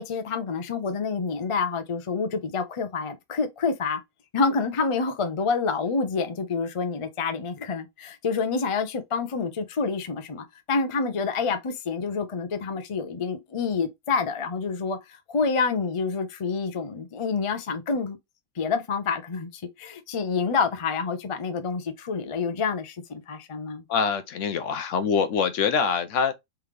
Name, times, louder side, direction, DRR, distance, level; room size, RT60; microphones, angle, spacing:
voice 1, 0.0-4.0 4.3-18.2 18.6-23.8, left 5 dB, 45° left, 0.4 m, -28 dB
voice 2, 23.9-26.3, left 6 dB, 65° left, 0.8 m, -24 dB
3.6 x 3.3 x 3.2 m
omnidirectional pair, 1.5 m